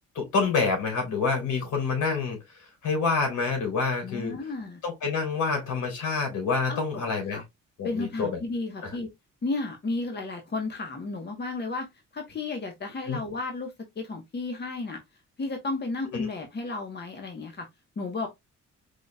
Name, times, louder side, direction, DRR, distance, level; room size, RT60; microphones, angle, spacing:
voice 1, 0.2-4.3 4.8-7.4 7.8-8.4 8.8-9.0 13.1-13.2 16.1-16.3, left 4 dB, 80° left, 3.5 m, -27 dB
voice 2, 4.0-4.8 6.7-7.4 7.8-9.1 9.4-11.9 12.1-15.0 15.4-17.7 18.0-18.3, left 3 dB, 35° left, 1.3 m, -33 dB
5.0 x 4.1 x 2.3 m
cardioid pair, 90°, 30 cm